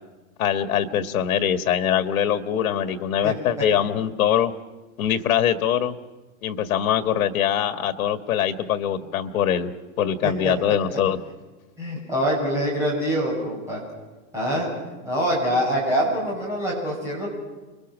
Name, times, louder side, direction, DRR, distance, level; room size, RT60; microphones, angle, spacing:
voice 1, 0.4-4.5 5.0-6.0 6.4-9.7 10.0-11.2, left 9 dB, 85° left, 8 dB, 1.6 m, -23 dB
voice 2, 11.8-13.8 14.3-14.7 15.0-17.3, equal, 5° right, -5 dB, 6.2 m, -24 dB
29.0 x 22.5 x 6.2 m, 1.2 s
supercardioid pair, 180°, 41 cm